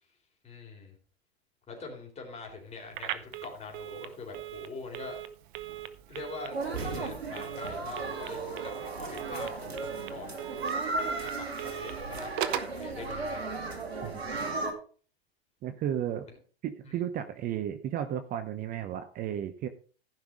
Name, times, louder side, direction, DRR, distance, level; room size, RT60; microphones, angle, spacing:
voice 1, 0.4-1.0 1.7-5.2 6.1-9.5 9.8-10.4 11.2-13.4 16.9-17.0, left 4 dB, 20° left, 1 dB, 4.0 m, -44 dB
Telephone, 2.9-12.8, right 12 dB, 55° right, 1.1 m, -40 dB
sound 1, 6.5-14.7, right 3 dB, 80° right, 2.6 m, -35 dB
voice 2, 15.6-16.3 16.6-19.7, right 10 dB, 30° right, 11 dB, 0.8 m, -33 dB
15.0 x 5.9 x 5.1 m, 0.41 s
figure-of-eight pair, 100°, 31 cm